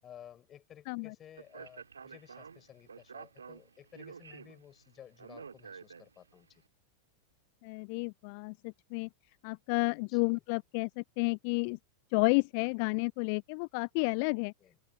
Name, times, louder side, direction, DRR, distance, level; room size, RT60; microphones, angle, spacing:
voice 1, 0.0-6.6 10.1-10.4 14.6-14.8, left 10 dB, 25° left, 7.7 m, -55 dB
Speech, 1.3-6.4, right 6 dB, 75° right, 2.6 m, -50 dB
voice 2, 7.6-9.1 9.4-11.8 12.1-14.5, left 34 dB, 45° left, 0.5 m, -31 dB
figure-of-eight pair, 90°, 0 cm